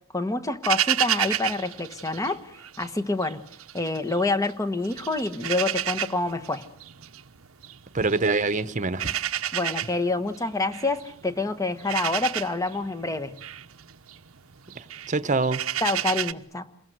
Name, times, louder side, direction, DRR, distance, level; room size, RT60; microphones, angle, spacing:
voice 1, 0.1-3.4 3.7-6.6 9.5-13.4 15.8-16.7, left 2 dB, 15° left, 1.3 m, -27 dB
sound 1, 0.6-2.9 3.2-4.5 4.8-16.3, right 11 dB, 85° right, 1.0 m, -31 dB
voice 2, 7.9-9.2 14.7-15.6, right 3 dB, 35° right, 1.1 m, -25 dB
28.5 x 21.0 x 7.9 m
head